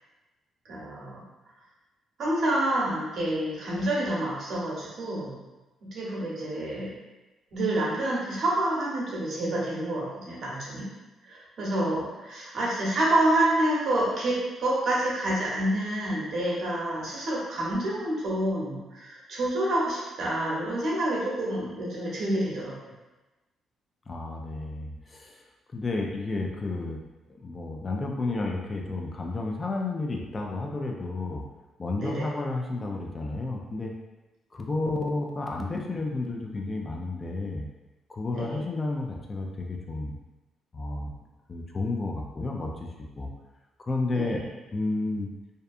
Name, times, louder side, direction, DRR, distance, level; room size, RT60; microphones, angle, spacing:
voice 1, 0.7-1.3 2.2-5.4 5.8-6.9 7.5-10.9 11.2-22.7 32.0-32.3 38.3-38.6 44.1-44.4, right 1 dB, 65° right, -5 dB, 0.9 m, -28 dB
voice 2, 24.1-25.3 25.7-27.0 27.4-31.4 31.8-33.9 34.5-37.6 38.1-40.1 40.7-41.1 41.5-42.7 43.2-43.3 43.8-44.5 44.7-45.3, left 2 dB, 30° left, 0 dB, 0.4 m, -31 dB
2.6 x 2.2 x 2.4 m, 1.1 s
cardioid pair, 90°, 0 cm